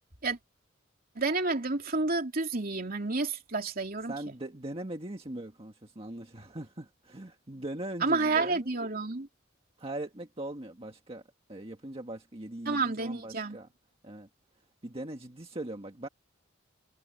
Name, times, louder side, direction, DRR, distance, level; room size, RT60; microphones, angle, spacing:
voice 1, 1.1-4.1 8.0-9.3 12.6-13.6, right 3 dB, 45° right, 3.0 m, -30 dB
voice 2, 4.1-8.7 9.8-11.2 11.5-13.7 14.0-14.3 14.8-16.1, right 1 dB, 30° right, 1.7 m, -40 dB
head